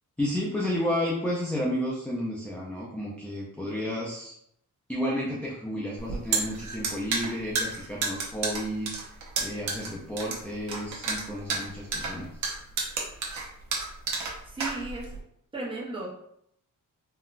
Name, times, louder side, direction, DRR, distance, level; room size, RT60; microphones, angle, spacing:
voice 1, 0.2-4.3 4.9-9.0 9.4-12.4, equal, 5° left, -4 dB, 0.3 m, -31 dB
sound 1, 6.0-15.2, right 4 dB, 65° right, 0.7 m, -31 dB
voice 2, 14.5-15.2 15.5-16.1, right 2 dB, 15° right, -5 dB, 0.7 m, -35 dB
3.7 x 2.2 x 2.4 m, 0.72 s
wide cardioid pair, 180°, 32 cm